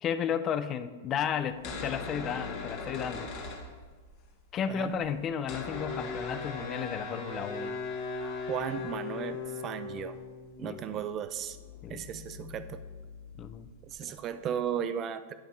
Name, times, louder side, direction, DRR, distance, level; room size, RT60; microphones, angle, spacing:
voice 1, 0.0-3.3 4.5-7.8 10.6-11.0 11.8-12.0 13.4-13.7 14.0-14.1, left 8 dB, 30° left, 10 dB, 0.5 m, -33 dB
sound 1, 1.5-4.2 4.5-4.6 4.8-14.2, left 4 dB, 45° left, 1.6 m, -39 dB
Animal, 2.9-4.2 4.8-4.9 5.5-6.5 7.9-8.0 8.2-9.2, equal, 15° right, 2.0 m, -58 dB
voice 2, 8.5-10.2 10.6-11.6 11.9-12.8 13.9-15.3, right 9 dB, 35° right, 12 dB, 0.4 m, -35 dB
10.5 x 3.6 x 4.5 m, 1.5 s
hypercardioid pair, 120°, 0 cm